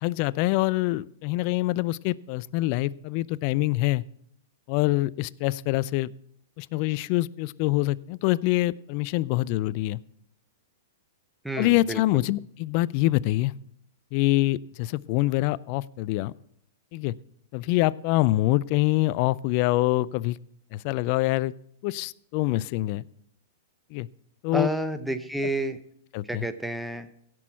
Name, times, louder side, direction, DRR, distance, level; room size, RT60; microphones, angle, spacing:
voice 1, 0.0-4.0 4.7-6.1 6.6-10.0 11.6-13.5 14.1-16.3 16.9-17.1 17.5-20.4 20.7-21.5 21.8-23.0 23.9-24.1 24.4-24.7 26.1-26.4, left 18 dB, 50° left, 21 dB, 0.3 m, -25 dB
voice 2, 11.4-12.0 24.5-25.8 26.2-27.1, right 1 dB, ahead, 10 dB, 0.7 m, -29 dB
16.5 x 6.2 x 4.5 m, 0.71 s
hypercardioid pair, 115°, 0 cm